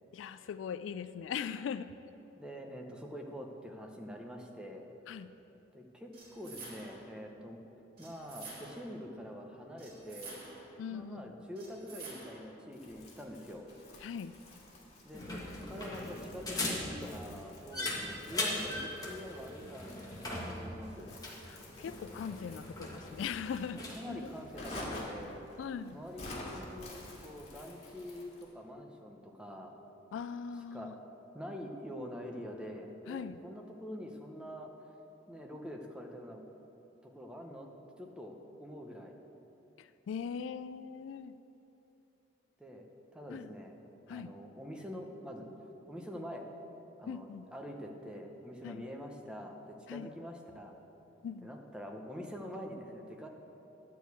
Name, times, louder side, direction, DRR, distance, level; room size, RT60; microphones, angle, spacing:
voice 1, 0.1-1.9 5.1-5.3 10.8-11.3 14.0-14.3 21.5-24.3 25.6-26.0 30.1-30.9 33.1-33.4 39.8-41.3 43.3-43.5 44.1-44.3 47.1-47.5 48.6-48.8 49.9-50.1 51.2-51.5, left 7 dB, 75° left, 13 dB, 0.3 m, -40 dB
voice 2, 2.4-4.8 5.7-7.6 8.0-10.4 10.9-13.7 15.0-21.1 23.9-25.4 25.9-29.7 30.7-30.9 31.3-34.7 35.3-36.4 37.0-37.7 38.0-39.1 42.6-42.9 43.1-43.8 44.1-45.5 45.9-46.4 47.0-50.7 51.4-53.3, equal, 5° right, 1 dB, 0.9 m, -45 dB
sound 1, 6.1-7.1 8.0-8.9 9.8-10.8 11.5-12.5, right 3 dB, 55° right, 2.4 m, -49 dB
Crumpling crinkling, 12.7-28.5, left 1 dB, 35° left, 2.0 m, -49 dB
sound 2, 15.1-24.0, left 2 dB, 20° left, 1.6 m, -40 dB
11.5 x 4.6 x 8.3 m, 2.9 s
head